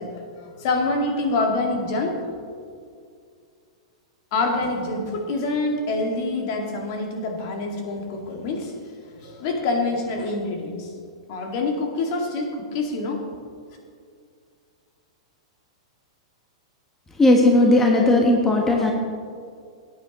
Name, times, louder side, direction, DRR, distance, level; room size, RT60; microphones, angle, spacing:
voice 1, 0.0-2.4 4.3-8.7 9.0-10.9 11.3-13.2, left 2 dB, 45° left, 2 dB, 2.0 m, -26 dB
voice 2, 17.2-18.9, left 2 dB, 10° left, 0 dB, 1.2 m, -16 dB
17.5 x 9.5 x 3.0 m, 2.2 s
figure-of-eight pair, 100°, 3 cm